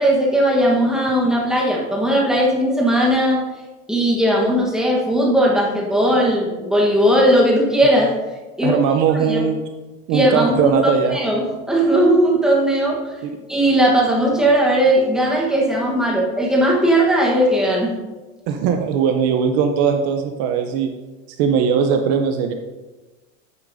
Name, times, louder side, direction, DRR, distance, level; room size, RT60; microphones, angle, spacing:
voice 1, 0.0-3.4 3.9-8.1 8.6-8.8 9.1-9.4 10.1-10.7 11.1-13.1 13.5-17.9, right 1 dB, ahead, -3 dB, 1.1 m, -17 dB
voice 2, 8.6-9.6 10.1-11.2 13.2-13.3 18.5-20.9 21.4-22.5, right 7 dB, 45° right, 5 dB, 0.6 m, -19 dB
9.6 x 8.2 x 2.6 m, 1.2 s
cardioid pair, 170°, 35 cm